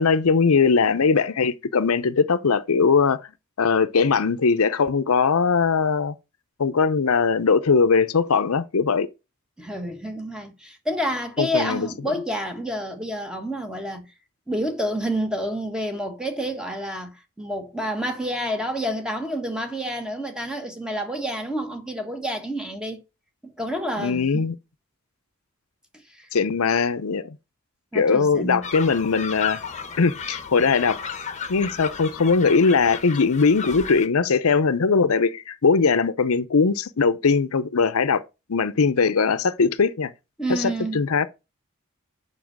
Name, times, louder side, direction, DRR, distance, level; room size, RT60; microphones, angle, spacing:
voice 1, 0.0-3.2 3.6-6.2 6.6-9.1 11.4-11.9 24.0-24.5 26.3-27.4 27.9-29.6 30.0-31.0 31.5-38.2 38.5-40.1 40.5-41.3, left 5 dB, 75° left, 0.6 m, -20 dB
voice 2, 9.6-14.1 14.5-23.0 23.4-24.5 26.1-26.3 27.9-28.6 40.4-41.0, equal, 5° right, 1.3 m, -29 dB
sound 1, 28.6-34.1, left 6 dB, 30° left, 0.9 m, -34 dB
7.3 x 5.5 x 6.1 m
head